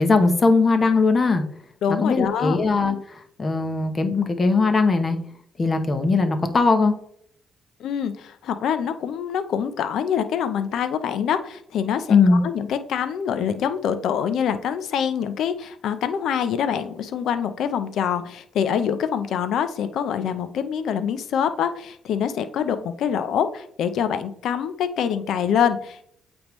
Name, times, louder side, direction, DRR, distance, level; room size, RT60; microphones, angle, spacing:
voice 1, 0.0-1.4 1.9-3.0 3.4-5.2 5.6-6.9 12.1-12.4, left 4 dB, 35° left, 7 dB, 0.9 m, -19 dB
voice 2, 1.8-2.6 7.8-26.1, left 8 dB, 75° left, 10 dB, 0.6 m, -25 dB
8.6 x 3.5 x 3.1 m, 0.64 s
cardioid pair, 90°, 0 cm